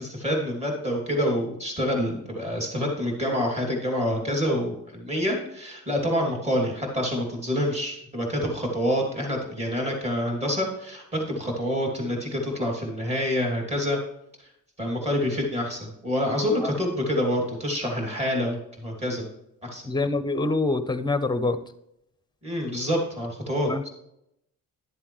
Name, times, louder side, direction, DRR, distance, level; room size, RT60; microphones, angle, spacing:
voice 1, 0.0-14.0 14.8-19.3 19.6-19.8 22.4-23.7, equal, 20° right, 0 dB, 2.7 m, -27 dB
voice 2, 19.8-21.6 23.7-23.8, left 3 dB, 15° left, 11 dB, 0.6 m, -25 dB
11.5 x 7.5 x 3.1 m, 0.79 s
cardioid pair, 135°, 33 cm